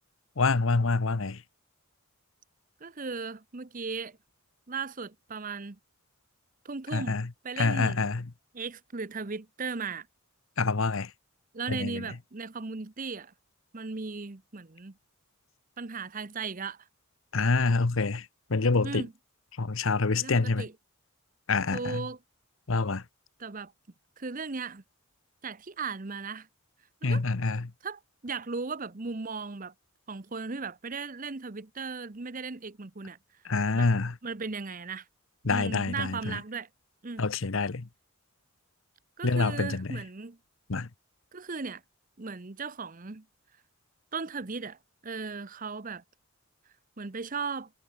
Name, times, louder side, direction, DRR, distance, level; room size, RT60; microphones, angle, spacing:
voice 1, 0.4-1.4 6.9-7.3 7.6-8.2 10.6-11.1 11.7-12.0 17.3-19.0 19.6-20.7 21.5-22.0 22.7-23.0 27.0-27.7 33.4-34.1 35.4-36.4 37.2-37.9 39.2-40.0 40.7-40.9, left 3 dB, 65° left, 0.9 m, -27 dB
voice 2, 2.8-4.2 4.7-5.8 6.6-8.0 8.5-10.1 11.5-13.3 13.7-15.0 15.8-16.9 18.8-19.1 20.2-20.7 21.7-22.2 23.4-23.7 24.2-24.8 25.4-26.5 27.0-27.3 27.8-29.7 30.1-33.2 33.7-33.9 34.2-35.1 35.4-36.7 37.0-37.3 39.2-40.4 41.3-41.8 42.2-43.3 44.1-44.8 45.0-46.0 47.0-47.7, right 4 dB, 40° right, 0.9 m, -37 dB
head